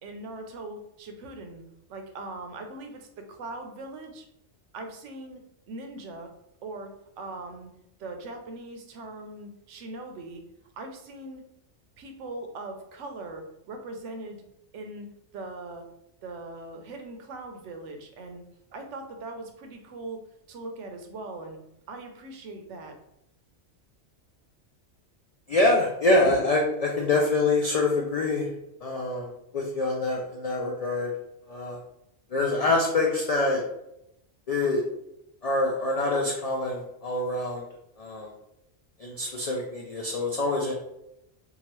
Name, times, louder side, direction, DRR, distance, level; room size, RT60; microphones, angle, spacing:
voice 1, 0.0-1.6 1.9-4.3 4.7-6.3 6.6-7.7 8.0-10.4 10.8-11.4 12.0-14.4 14.7-15.9 16.2-18.4 18.7-21.6 21.9-23.0, right 2 dB, 85° right, 4 dB, 0.9 m, -40 dB
voice 2, 25.5-28.5 28.8-31.1 31.5-31.8 32.3-33.6 34.5-34.8 35.4-37.6 38.0-38.3 39.0-40.7, left 2 dB, 80° left, -1 dB, 0.3 m, -25 dB
2.8 x 2.3 x 3.0 m, 0.82 s
omnidirectional pair, 1.2 m